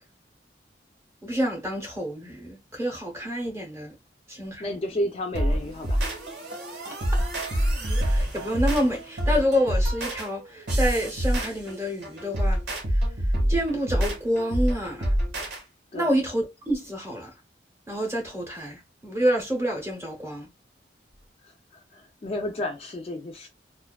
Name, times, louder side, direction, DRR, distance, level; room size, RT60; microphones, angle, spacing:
voice 1, 1.2-4.0 4.3-4.7 7.9-12.6 12.9-13.0 13.5-15.2 15.9-17.3 17.9-20.5, equal, 15° right, 0.8 m, -28 dB
voice 2, 4.6-6.0 6.9-7.0 15.9-16.1 21.4-23.5, left 1 dB, 35° left, 0.3 m, -32 dB
sound 1, 5.3-15.6, equal, 85° right, 1.1 m, -26 dB
2.4 x 2.3 x 2.2 m
head